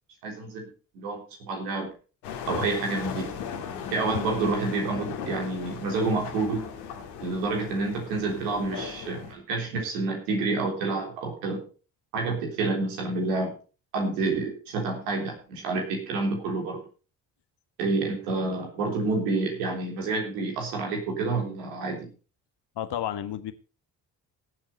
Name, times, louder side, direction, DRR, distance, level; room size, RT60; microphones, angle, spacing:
voice 1, 0.2-0.7 0.9-1.9 2.5-3.3 3.9-6.7 7.2-11.6 12.1-13.5 13.9-16.8 17.8-22.1, right 3 dB, 80° right, 1 dB, 3.7 m, -28 dB
sound 1, 2.2-9.3, left 7 dB, 85° left, 2.3 m, -37 dB
voice 2, 22.8-23.5, left 11 dB, 55° left, 11 dB, 1.4 m, -32 dB
17.5 x 8.1 x 4.1 m, 0.35 s
hypercardioid pair, 40°, 49 cm